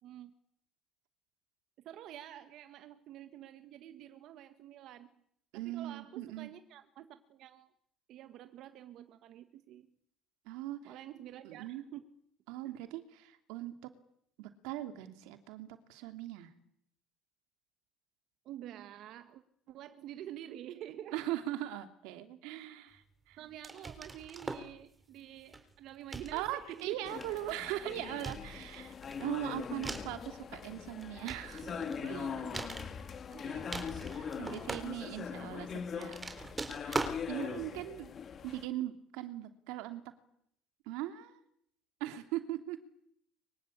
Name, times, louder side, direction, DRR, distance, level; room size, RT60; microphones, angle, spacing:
voice 1, 0.0-0.3 1.8-5.1 5.5-7.7 8.1-9.9 10.8-12.0 12.6-12.7 18.4-21.2 23.4-27.1 31.6-32.7 33.3-34.8 37.4-37.6, right 11 dB, 60° right, 9 dB, 1.8 m, -49 dB
voice 2, 5.5-6.5 10.5-11.0 11.4-11.8 12.5-13.9 14.4-16.5 21.1-23.4 26.3-28.9 29.2-31.7 32.1-32.2 34.4-36.2 36.8-38.1 38.4-40.0 40.9-41.4 42.0-42.8, right 14 dB, 85° right, 8 dB, 2.8 m, -40 dB
sound 1, 23.6-24.7 25.5-25.7 26.1-26.8 27.2-27.7 28.2-30.2 30.9-32.1 32.5-33.4 33.6-35.3 35.9-37.2, right 3 dB, 15° right, 3.8 m, -41 dB
sound 2, 27.0-38.7, left 7 dB, 40° left, 2.3 m, -42 dB
24.5 x 23.5 x 8.6 m, 0.70 s
cardioid pair, 120°, 0 cm